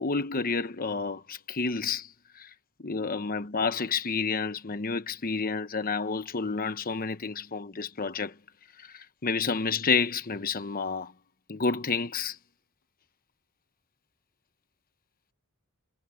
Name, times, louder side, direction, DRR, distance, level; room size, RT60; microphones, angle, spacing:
voice 1, 0.0-2.5 2.8-8.3 8.8-11.1 11.5-12.4, left 4 dB, 40° left, 1.0 m, -30 dB
head